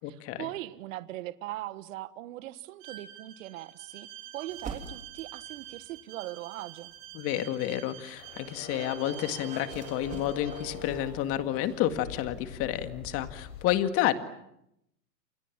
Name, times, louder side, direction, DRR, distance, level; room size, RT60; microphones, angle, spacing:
voice 1, 0.1-4.1 4.3-6.9, right 15 dB, 55° right, 13 dB, 1.5 m, -40 dB
Bowed string instrument, 2.8-10.7, right 13 dB, 35° right, 6.7 m, -47 dB
sound 1, 4.5-6.1 6.7-13.0, right 5 dB, 15° right, 3.8 m, -49 dB
voice 2, 7.1-14.1, left 12 dB, 30° left, 9 dB, 2.0 m, -30 dB
sound 2, 8.2-13.7, left 4 dB, 60° left, 7.1 m, -43 dB
28.5 x 28.0 x 7.3 m, 0.81 s
supercardioid pair, 155°, 47 cm